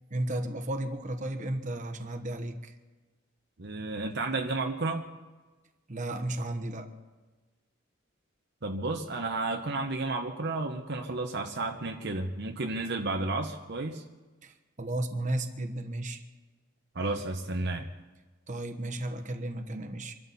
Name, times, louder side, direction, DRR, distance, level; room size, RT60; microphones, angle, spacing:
voice 1, 0.1-2.7 5.9-7.0 14.4-16.2 18.5-20.1, right 1 dB, 35° right, 5 dB, 1.1 m, -34 dB
voice 2, 3.6-5.1 8.6-14.0 16.9-17.9, right 2 dB, 55° right, 3 dB, 0.9 m, -32 dB
25.5 x 12.5 x 4.1 m, 1.3 s
head